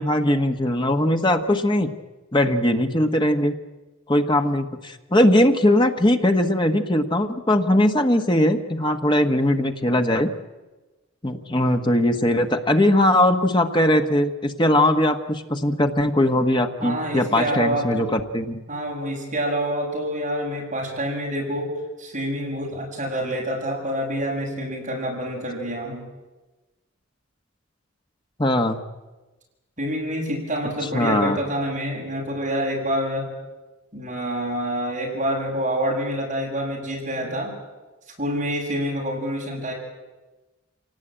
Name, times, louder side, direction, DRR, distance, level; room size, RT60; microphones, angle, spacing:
voice 1, 0.0-1.9 2.3-3.5 4.1-10.3 11.2-18.6 28.4-28.8 30.9-31.4, left 1 dB, 20° left, 6 dB, 1.2 m, -20 dB
voice 2, 16.8-18.0 18.7-21.7 22.0-26.0 29.8-33.3 33.9-37.5 38.2-39.7, equal, 35° right, -2 dB, 7.3 m, -27 dB
26.0 x 18.5 x 8.9 m, 1.2 s
head